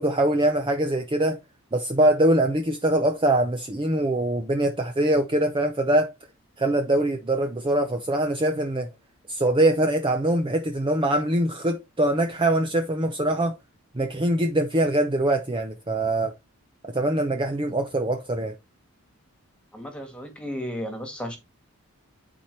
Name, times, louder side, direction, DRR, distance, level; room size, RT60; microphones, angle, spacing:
voice 1, 0.0-1.4 1.7-6.1 6.6-8.9 9.3-13.6 13.9-16.4 16.9-18.6, right 1 dB, 20° right, 0.6 m, -23 dB
voice 2, 19.7-21.4, equal, 5° left, 1.9 m, -34 dB
10.0 x 4.4 x 3.3 m
head